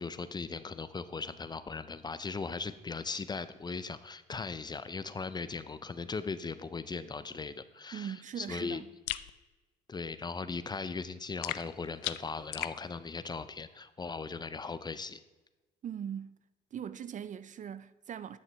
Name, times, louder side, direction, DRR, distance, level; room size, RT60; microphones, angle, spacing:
voice 1, 0.0-8.8 9.9-15.2, left 4 dB, 20° left, 0.5 m, -38 dB
voice 2, 7.9-8.9 15.8-16.4 16.7-18.4, right 9 dB, 40° right, 0.4 m, -40 dB
sound 1, 9.1-9.3 11.4-12.8, left 16 dB, 75° left, 0.4 m, -37 dB
11.0 x 6.5 x 3.1 m
supercardioid pair, 75°, 20 cm